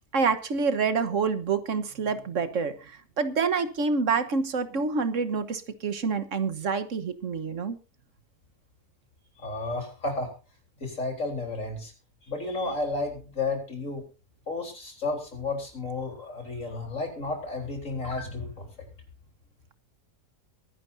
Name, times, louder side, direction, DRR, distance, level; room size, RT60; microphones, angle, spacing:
voice 1, 0.1-7.8, right 5 dB, 65° right, 1.6 m, -27 dB
voice 2, 9.4-10.3 10.8-11.9 12.2-14.0 14.5-18.9, left 3 dB, 70° left, 4.4 m, -32 dB
22.5 x 11.0 x 2.7 m
omnidirectional pair, 1.4 m